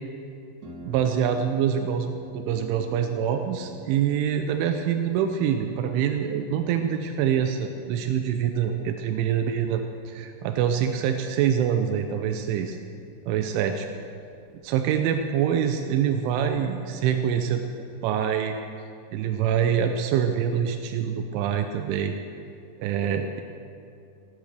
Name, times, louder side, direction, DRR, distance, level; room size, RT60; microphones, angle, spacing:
Harp, 0.6-18.1, equal, 50° right, 3.1 m, -50 dB
voice 1, 0.8-2.1 2.3-12.8 13.3-13.9 14.6-17.7 18.0-18.6 19.1-22.1 22.8-23.4, right 8 dB, 85° right, 6 dB, 3.2 m, -25 dB
19.0 x 11.5 x 6.7 m, 2.5 s
omnidirectional pair, 5.4 m